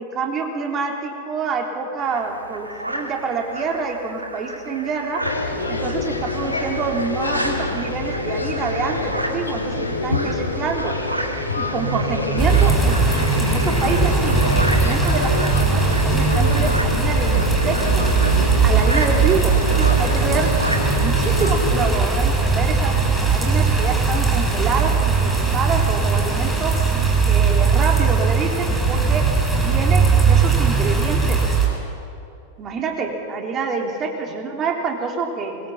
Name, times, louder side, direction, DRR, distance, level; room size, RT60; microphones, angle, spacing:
voice 1, 0.0-5.2 5.7-10.9 11.6-18.0 18.6-20.5 20.9-22.9 23.2-26.7 27.3-31.4 32.6-35.6, right 5 dB, 30° right, 2 dB, 3.7 m, -27 dB
sound 1, 2.0-21.3, right 1 dB, 85° right, 2.1 m, -33 dB
sound 2, 5.2-21.9, left 2 dB, 80° left, 2.9 m, -26 dB
sound 3, 12.4-31.7, right 4 dB, ahead, 7.3 m, -19 dB
24.0 x 22.0 x 7.4 m, 2.6 s
figure-of-eight pair, 90°, 0 cm